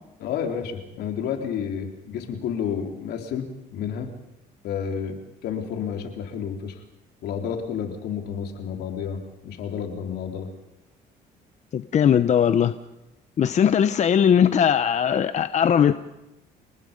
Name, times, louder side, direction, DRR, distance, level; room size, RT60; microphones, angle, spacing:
voice 1, 0.2-3.4 3.7-4.1 4.6-6.8 7.2-10.5, left 7 dB, 75° left, 4 dB, 3.8 m, -30 dB
voice 2, 11.7-12.7 13.4-15.9, left 8 dB, 45° left, 11 dB, 0.9 m, -19 dB
29.0 x 19.5 x 5.4 m, 0.93 s
cardioid pair, 110°, 17 cm